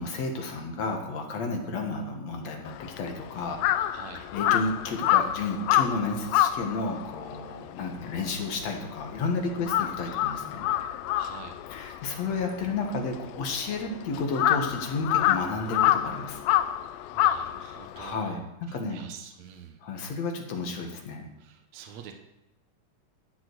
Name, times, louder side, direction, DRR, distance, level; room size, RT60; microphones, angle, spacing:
voice 1, 0.0-3.6 4.1-10.7 11.7-16.4 17.9-19.0 19.8-21.3, left 3 dB, 60° left, 2 dB, 2.9 m, -32 dB
Crow, 2.7-9.2 9.5-18.1, left 12 dB, 80° left, 1.6 m, -27 dB
voice 2, 3.9-4.2 9.5-9.7 11.2-11.6 17.1-19.8 21.4-22.1, right 8 dB, 70° right, 4 dB, 2.2 m, -46 dB
12.5 x 8.4 x 6.3 m, 0.94 s
omnidirectional pair, 3.5 m